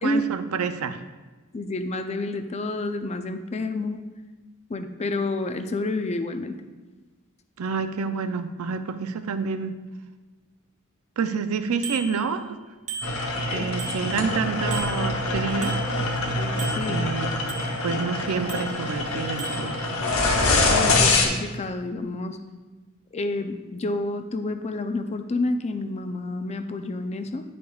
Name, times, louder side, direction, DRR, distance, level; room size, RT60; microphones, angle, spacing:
voice 1, 0.0-1.0 7.6-9.8 11.2-12.6 13.5-15.8 16.9-17.3 17.8-20.0, right 5 dB, 75° right, 10 dB, 0.5 m, -28 dB
voice 2, 1.5-4.0 4.7-6.5 13.4-13.7 16.3-17.0 20.7-22.4 23.1-27.4, left 2 dB, 30° left, 8 dB, 0.4 m, -29 dB
Bicycle bell, 11.8-12.6 12.9-14.4 14.7-16.3 16.6-18.0 18.5-19.1 19.4-19.8, right 4 dB, 35° right, 0.9 m, -38 dB
sound 1, 13.0-21.3, left 2 dB, 70° left, 1.0 m, -25 dB
10.5 x 5.0 x 2.3 m, 1.3 s
head